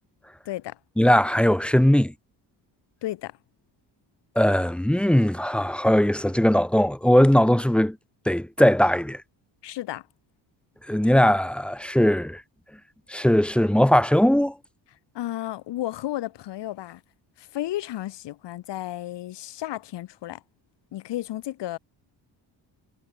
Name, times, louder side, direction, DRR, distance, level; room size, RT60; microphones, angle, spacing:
voice 1, 0.5-0.8 3.0-3.4 9.6-10.1 15.1-17.0 17.4-20.4 20.9-21.8, left 14 dB, 80° left, 2.3 m, -33 dB
voice 2, 1.0-2.1 4.4-8.0 8.3-9.2 10.9-12.4 13.1-14.5, equal, 5° left, 0.7 m, -19 dB
cardioid pair, 170°, 42 cm